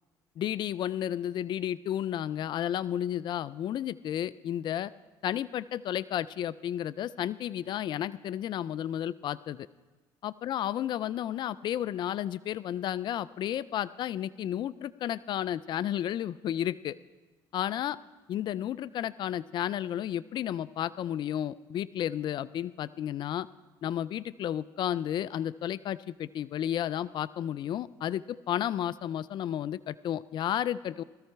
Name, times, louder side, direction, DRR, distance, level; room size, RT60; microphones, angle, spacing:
voice 1, 0.4-4.9 5.2-9.7 10.2-17.0 17.5-18.0 18.3-23.5 23.8-31.0, left 11 dB, 55° left, 17 dB, 0.4 m, -32 dB
17.0 x 13.5 x 4.6 m, 1.3 s
cardioid pair, 90°, 9 cm